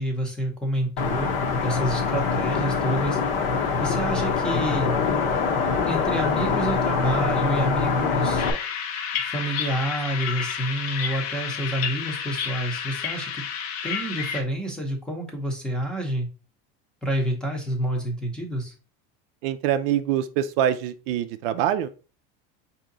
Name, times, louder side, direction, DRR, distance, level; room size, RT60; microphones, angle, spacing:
voice 1, 0.0-1.3 1.6-3.2 3.8-4.9 5.9-8.5 9.2-13.4 13.8-16.3 17.0-18.7, right 1 dB, 5° left, 1 dB, 0.7 m, -28 dB
sound 1, 1.0-8.5, left 5 dB, 40° left, 0.7 m, -24 dB
sound 2, 8.4-14.4, left 7 dB, 80° left, 0.9 m, -30 dB
voice 2, 19.4-21.9, right 10 dB, 70° right, 11 dB, 0.5 m, -24 dB
4.9 x 2.8 x 3.8 m, 0.34 s
cardioid pair, 165°, 30 cm